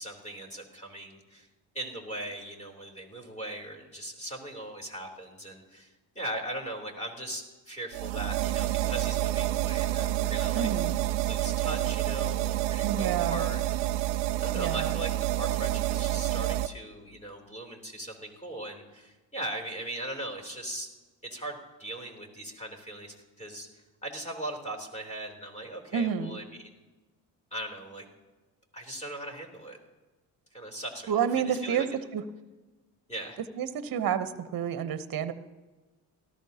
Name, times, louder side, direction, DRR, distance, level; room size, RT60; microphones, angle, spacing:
voice 1, 0.0-1.5 1.7-10.7 11.2-14.1 14.4-20.9 21.2-23.7 24.0-26.7 27.5-28.0 28.7-29.8 30.5-31.1 31.5-31.9 33.1-33.4, right 1 dB, 15° left, 1 dB, 3.7 m, -39 dB
sound 1, 7.9-16.7, right 14 dB, 85° right, 0.6 m, -28 dB
voice 2, 10.5-10.9 12.8-13.5 14.5-14.9 25.9-26.4 31.1-31.9 32.1-32.2 33.6-35.3, right 8 dB, 45° right, 12 dB, 1.0 m, -29 dB
18.5 x 13.5 x 2.9 m, 1.2 s
hypercardioid pair, 60°, 47 cm